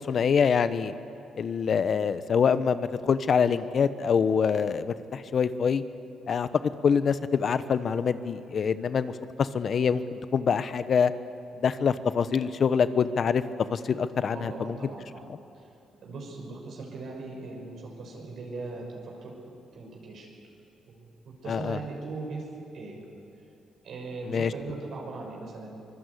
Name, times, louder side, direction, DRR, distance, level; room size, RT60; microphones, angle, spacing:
voice 1, 0.1-0.9 1.4-5.8 6.3-6.5 6.8-9.1 9.4-11.1 11.6-13.4 13.7-14.8 21.5-21.8 24.3-24.5, left 6 dB, 50° left, 13 dB, 1.0 m, -25 dB
voice 2, 14.3-15.6 16.0-19.4 19.7-20.3 20.9-21.0 21.4-22.5 22.7-23.1 23.8-25.8, right 3 dB, 65° right, -1 dB, 6.0 m, -39 dB
24.0 x 21.5 x 8.5 m, 2.7 s
cardioid pair, 90°, 0 cm